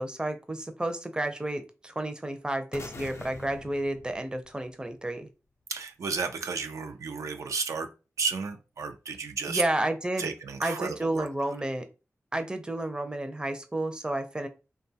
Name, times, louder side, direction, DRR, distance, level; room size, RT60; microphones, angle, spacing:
voice 1, 0.0-5.3 9.5-10.3 10.6-11.9 12.3-14.5, right 1 dB, 15° right, 7 dB, 0.5 m, -31 dB
sound 1, 2.7-4.8, left 3 dB, 60° left, 0.4 m, -44 dB
voice 2, 5.7-7.9 8.2-9.6 10.2-11.3, right 5 dB, 80° right, 5 dB, 0.3 m, -32 dB
2.6 x 2.2 x 2.7 m, 0.30 s
cardioid pair, 45°, 5 cm